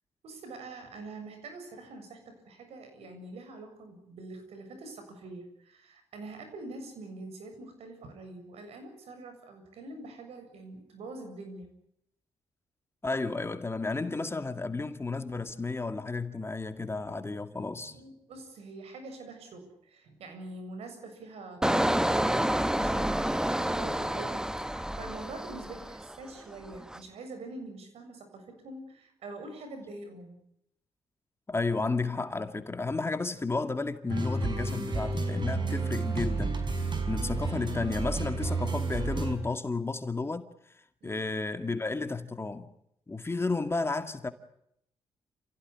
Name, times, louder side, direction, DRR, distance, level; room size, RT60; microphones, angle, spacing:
voice 1, 0.2-11.7 17.8-30.4 41.0-41.2, right 2 dB, 80° right, 7.3 m, -45 dB
voice 2, 13.0-18.0 31.5-40.5 41.0-42.7 43.1-44.3, left 3 dB, 25° left, 2.2 m, -32 dB
Engine, 21.6-26.3 26.6-27.0, right 1 dB, 5° right, 1.2 m, -29 dB
sound 1, 34.1-39.4, right 3 dB, 50° right, 5.9 m, -31 dB
28.5 x 16.0 x 9.9 m
cardioid pair, 70°, 10 cm